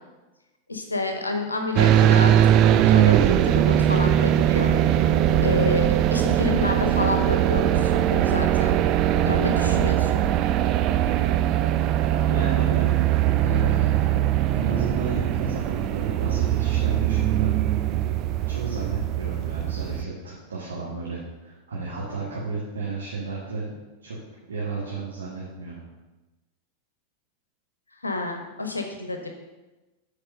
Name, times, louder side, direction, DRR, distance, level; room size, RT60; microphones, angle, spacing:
voice 1, 0.7-2.3 2.7-4.7 5.4-8.8 9.2-10.2 28.0-29.3, left 3 dB, 80° left, 4 dB, 1.0 m, -29 dB
sound 1, 1.8-20.0, right 11 dB, 40° right, 0.4 m, -21 dB
voice 2, 12.2-12.9 13.2-14.1 14.5-17.5 18.4-23.7 24.0-24.2 24.5-25.8, right 3 dB, 70° right, -4 dB, 1.6 m, -32 dB
7.7 x 4.7 x 6.4 m, 1.1 s
figure-of-eight pair, 90°, 0 cm